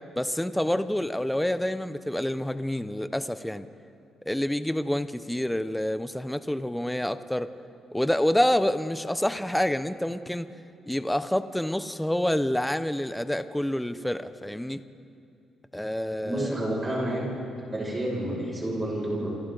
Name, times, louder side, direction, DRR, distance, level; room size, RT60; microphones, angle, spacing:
voice 1, 0.2-3.7 4.3-7.5 7.9-10.5 10.9-14.8 15.7-16.6, left 1 dB, 5° left, 12 dB, 0.5 m, -27 dB
voice 2, 16.2-17.3 17.7-19.3, right 1 dB, 20° right, -3 dB, 5.9 m, -29 dB
28.0 x 25.5 x 3.9 m, 2.6 s
cardioid pair, 160°, 0 cm